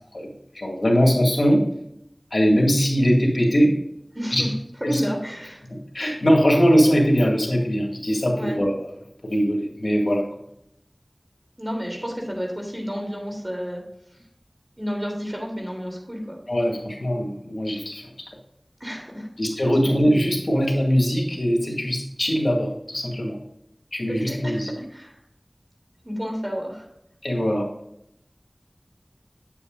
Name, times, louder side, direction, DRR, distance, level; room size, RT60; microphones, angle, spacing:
voice 1, 0.5-1.6 2.3-3.7 4.3-4.4 4.8-5.0 5.7-8.7 9.2-10.2 16.5-18.1 19.4-23.4 23.9-24.7 27.2-27.7, equal, 80° left, 0 dB, 2.1 m, -21 dB
voice 2, 4.1-4.5 4.8-5.6 8.3-8.6 11.6-13.8 14.1-14.2 14.8-16.4 18.8-19.3 19.8-19.9 24.1-25.2 26.0-26.9, equal, 25° right, 0 dB, 3.3 m, -31 dB
8.6 x 8.4 x 2.6 m, 0.76 s
wide cardioid pair, 40°, 0 cm